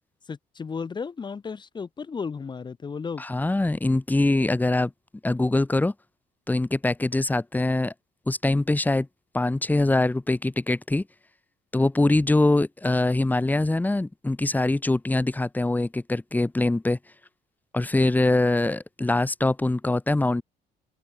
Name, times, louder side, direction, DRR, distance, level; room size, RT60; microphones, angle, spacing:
voice 1, 0.3-3.2, left 5 dB, 25° left, 1.2 m, -34 dB
voice 2, 3.2-4.9 5.2-5.9 6.5-7.9 8.3-9.1 9.3-11.0 11.7-17.0 17.7-20.4, left 2 dB, 10° left, 1.7 m, -23 dB
cardioid pair, 110°, 17 cm